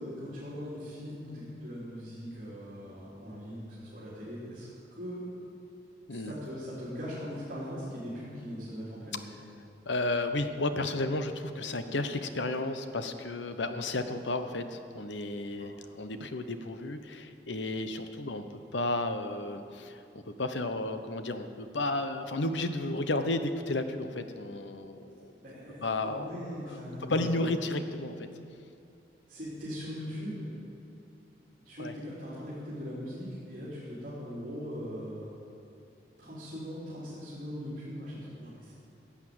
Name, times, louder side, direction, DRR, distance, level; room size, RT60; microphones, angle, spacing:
voice 1, 0.0-5.2 6.1-9.3 15.6-15.7 25.4-27.4 29.3-30.5 31.7-35.4 36.2-38.7, equal, 45° right, -8 dB, 3.6 m, -40 dB
voice 2, 9.9-25.3 25.8-26.3 26.7-26.8 27.1-28.2 31.8-31.9, left 2 dB, 90° left, 9 dB, 0.9 m, -33 dB
15.0 x 8.4 x 7.9 m, 2.7 s
head